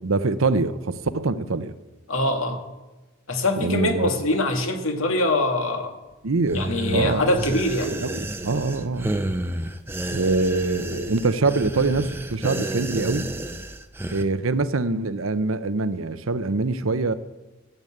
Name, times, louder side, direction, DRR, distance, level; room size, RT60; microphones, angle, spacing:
voice 1, 0.0-1.7 3.6-4.1 6.2-7.4 7.8-9.1 10.1-13.3 14.1-17.1, right 3 dB, 85° right, 12 dB, 0.8 m, -24 dB
voice 2, 2.1-2.6 3.3-5.9 6.5-7.9, left 1 dB, 80° left, 4 dB, 1.9 m, -23 dB
sound 1, 6.5-14.2, right 1 dB, 10° right, 0.7 m, -31 dB
14.0 x 8.1 x 8.7 m, 1.1 s
head